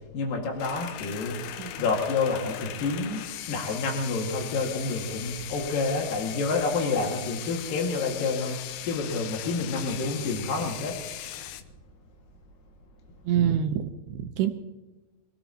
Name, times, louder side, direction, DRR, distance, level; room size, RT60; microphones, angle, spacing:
voice 1, 0.0-11.0, left 3 dB, 55° left, -1 dB, 3.2 m, -29 dB
sound 1, 0.6-11.6, left 12 dB, 80° left, 2.7 m, -39 dB
voice 2, 13.3-14.5, right 9 dB, 80° right, 6 dB, 2.4 m, -26 dB
26.0 x 17.5 x 2.9 m, 1.1 s
omnidirectional pair, 5.4 m